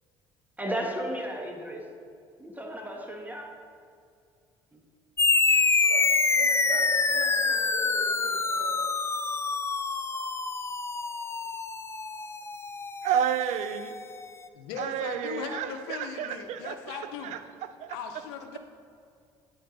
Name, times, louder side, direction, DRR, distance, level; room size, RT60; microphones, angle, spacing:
voice 1, 0.6-1.8 2.4-3.6 4.7-4.8, right 1 dB, 15° right, 3 dB, 1.4 m, -34 dB
sound 1, 5.2-14.1, left 4 dB, 20° left, 0.5 m, -26 dB
voice 2, 6.3-8.8, right 3 dB, 85° right, 1 dB, 1.2 m, -39 dB
voice 3, 13.0-13.9 14.8-17.4 17.8-18.0, right 9 dB, 70° right, 11 dB, 0.5 m, -31 dB
voice 4, 14.5-17.4 17.9-18.6, left 6 dB, 85° left, 6 dB, 0.7 m, -38 dB
8.5 x 5.2 x 5.1 m, 2.4 s
hypercardioid pair, 65°, 13 cm